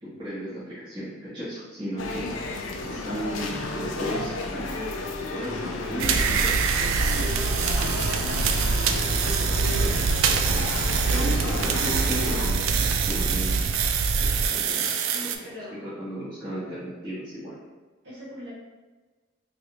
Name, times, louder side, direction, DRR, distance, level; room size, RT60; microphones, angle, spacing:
voice 1, 0.0-2.3 2.8-4.7 5.2-6.6 7.1-8.2 9.2-13.7 14.2-15.3 15.7-17.6, equal, 20° right, -11 dB, 1.0 m, -35 dB
sound 1, 2.0-12.5, left 2 dB, 90° left, 0.4 m, -32 dB
sound 2, 6.0-15.4, right 5 dB, 90° right, 0.3 m, -24 dB
voice 2, 15.1-15.8 18.0-18.5, left 1 dB, 60° right, -8 dB, 1.4 m, -40 dB
3.1 x 2.8 x 2.8 m, 1.2 s
head